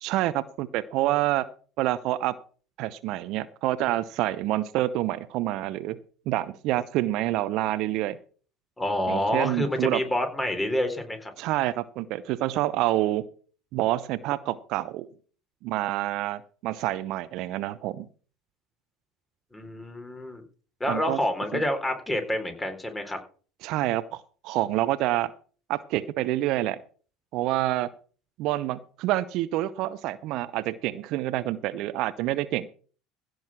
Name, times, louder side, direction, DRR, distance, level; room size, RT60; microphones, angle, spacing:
voice 1, 0.0-1.4 1.8-2.3 2.8-6.0 6.3-8.2 9.1-10.0 11.4-13.3 13.7-15.1 15.6-18.0 20.9-21.2 21.5-21.6 23.6-25.3 25.7-26.8 27.3-27.9 28.4-32.7, right 15 dB, 60° right, 15 dB, 0.7 m, -27 dB
voice 2, 8.8-11.3 19.5-20.4 20.8-23.2, left 1 dB, 15° left, 7 dB, 4.0 m, -28 dB
16.0 x 6.4 x 6.1 m, 0.40 s
hypercardioid pair, 70°, 0 cm